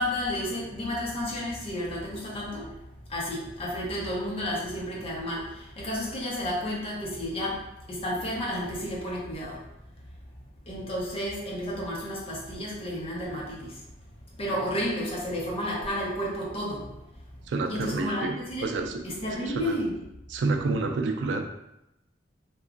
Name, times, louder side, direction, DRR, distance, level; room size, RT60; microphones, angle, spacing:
voice 1, 0.0-2.7 3.1-7.6 7.9-9.6 10.7-13.7 14.4-16.9 17.7-18.7 19.0-20.0, equal, 35° left, -4 dB, 0.7 m, -31 dB
voice 2, 17.5-19.2 19.5-19.8 20.3-21.5, right 3 dB, 70° right, 5 dB, 0.3 m, -29 dB
2.9 x 2.3 x 2.5 m, 0.87 s
head